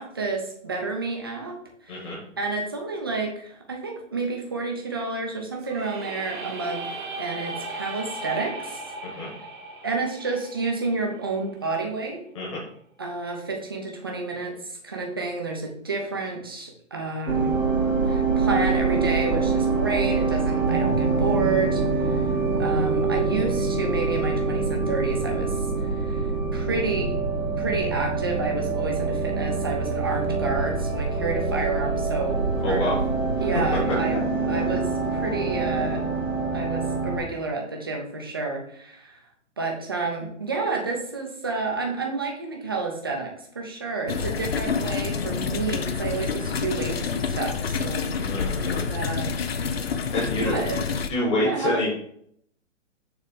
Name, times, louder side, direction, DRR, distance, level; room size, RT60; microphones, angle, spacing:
voice 1, 0.0-1.6 1.8-6.9 7.2-8.8 9.2-9.3 9.8-12.2 13.0-17.6 18.0-22.3 22.6-27.2 27.6-33.0 33.4-34.2 34.5-36.1 36.5-39.2 39.6-48.1 48.4-49.3 50.2-50.8 51.3-51.8, right 3 dB, 20° right, 1 dB, 0.6 m, -30 dB
sound 1, 5.6-11.5, right 2 dB, 40° right, 1.2 m, -37 dB
sound 2, 17.3-37.2, right 4 dB, 85° right, 1.7 m, -25 dB
voice 2, 32.6-33.0 34.1-34.2 48.1-48.8 50.1-50.6 51.1-51.9, left 1 dB, 25° left, -6 dB, 1.4 m, -27 dB
sound 3, 44.1-51.1, left 5 dB, 50° left, 0.6 m, -28 dB
6.7 x 3.4 x 5.0 m, 0.66 s
hypercardioid pair, 170°, 39 cm